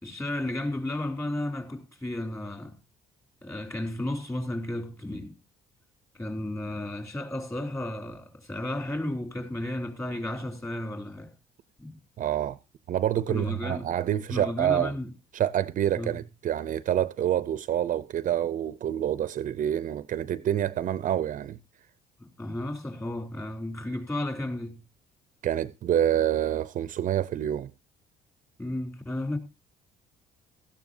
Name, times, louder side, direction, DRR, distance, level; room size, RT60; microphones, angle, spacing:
voice 1, 0.0-2.8 3.4-5.4 6.1-11.3 11.8-12.0 13.1-13.9 14.3-15.1 15.9-16.2 22.2-24.8 28.6-29.4, left 1 dB, 15° left, 3.3 m, -33 dB
voice 2, 12.2-12.6 12.9-14.9 15.3-21.6 25.4-27.7, right 11 dB, 50° right, 0.6 m, -27 dB
16.5 x 14.0 x 2.7 m
cardioid pair, 110°, 17 cm